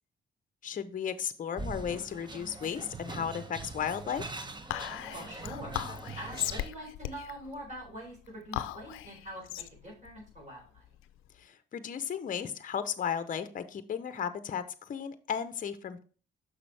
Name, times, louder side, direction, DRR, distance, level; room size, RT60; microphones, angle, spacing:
voice 1, 0.6-4.3 11.4-16.0, left 8 dB, 40° left, 11 dB, 0.7 m, -35 dB
sound 1, 1.6-6.7, right 3 dB, 20° right, 0.8 m, -42 dB
Whispering, 4.7-11.4, left 14 dB, 90° left, 0.5 m, -38 dB
voice 2, 5.1-5.8 6.2-10.8, right 1 dB, 40° right, -2 dB, 3.8 m, -44 dB
6.4 x 5.9 x 3.3 m, 0.39 s
cardioid pair, 75°, 20 cm